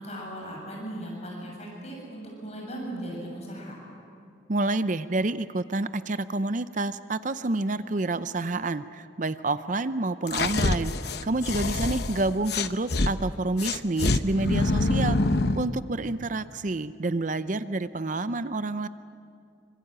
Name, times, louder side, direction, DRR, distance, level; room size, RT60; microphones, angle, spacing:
voice 1, 0.0-3.8, right 1 dB, 35° left, -2 dB, 7.2 m, -37 dB
voice 2, 4.5-10.9 11.2-15.2 15.6-18.9, right 2 dB, 40° right, 13 dB, 0.6 m, -28 dB
sound 1, 10.3-13.1 13.6-15.7, left 2 dB, 60° left, 0.9 m, -25 dB
26.5 x 25.0 x 8.9 m, 2.4 s
head